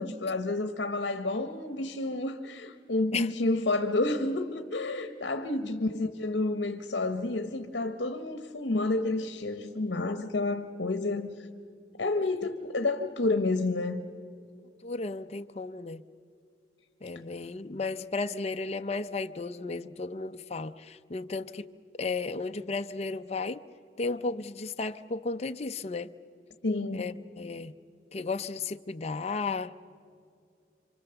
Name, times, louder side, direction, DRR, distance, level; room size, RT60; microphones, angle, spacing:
voice 1, 0.0-11.3 12.0-14.0 26.6-27.1, left 2 dB, 70° left, 1.0 m, -30 dB
voice 2, 14.8-16.0 17.0-21.7 22.0-23.6 24.0-26.1 26.9-27.7 28.1-29.7, left 3 dB, 35° left, 0.5 m, -34 dB
27.5 x 25.0 x 6.9 m
head